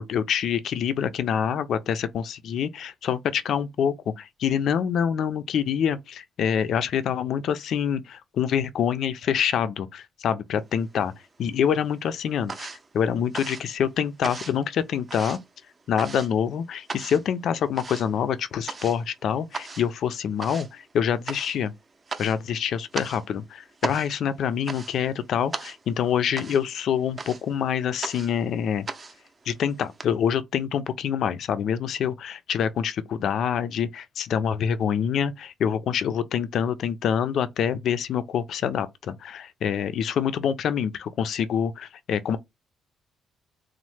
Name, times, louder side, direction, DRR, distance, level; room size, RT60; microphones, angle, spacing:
voice 1, 0.0-11.1 11.4-12.7 12.9-15.4 15.9-21.7 22.2-28.9 29.5-42.4, left 8 dB, 70° left, 0.4 m, -26 dB
sound 1, 10.7-11.5 11.8-30.1, right 4 dB, 30° right, 0.5 m, -38 dB
3.0 x 2.0 x 3.1 m
cardioid pair, 90°, 0 cm